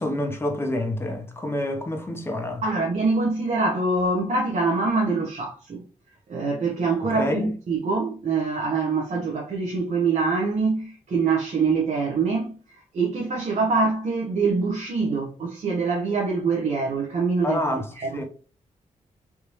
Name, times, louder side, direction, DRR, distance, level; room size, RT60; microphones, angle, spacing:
voice 1, 0.0-2.6 7.2-7.5 17.4-17.9 18.2-18.3, left 1 dB, 20° left, 0.9 m, -27 dB
voice 2, 2.6-5.8 6.3-17.6 17.9-18.2, right 4 dB, 60° right, 0.9 m, -24 dB
3.4 x 2.8 x 3.0 m
cardioid pair, 95°, 13 cm